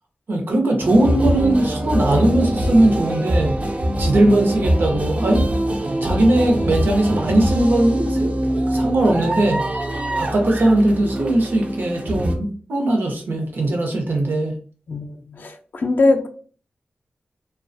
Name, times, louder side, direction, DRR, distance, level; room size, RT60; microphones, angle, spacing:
voice 1, 0.3-3.6 4.0-5.4 6.0-9.6 10.2-14.5, right 1 dB, 75° right, 2 dB, 0.7 m, -19 dB
sound 1, 0.8-12.4, right 1 dB, 40° right, 0.4 m, -23 dB
voice 2, 14.9-16.3, left 2 dB, 60° left, 6 dB, 0.4 m, -21 dB
2.3 x 2.2 x 2.5 m, 0.42 s
wide cardioid pair, 85°, 4 cm